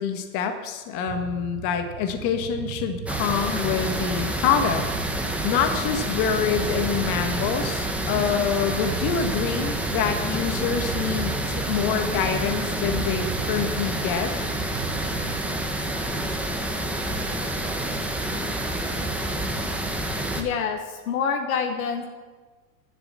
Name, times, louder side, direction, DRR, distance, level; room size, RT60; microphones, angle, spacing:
voice 1, 0.0-4.9 5.4-14.3, left 7 dB, 50° left, 6 dB, 1.6 m, -26 dB
sound 1, 1.1-15.4, right 11 dB, 45° right, 0.8 m, -37 dB
sound 2, 3.1-20.4, right 1 dB, 5° right, 1.1 m, -28 dB
voice 2, 20.3-22.1, left 6 dB, 80° left, 5 dB, 1.2 m, -27 dB
11.0 x 6.9 x 7.3 m, 1.4 s
hypercardioid pair, 115°, 42 cm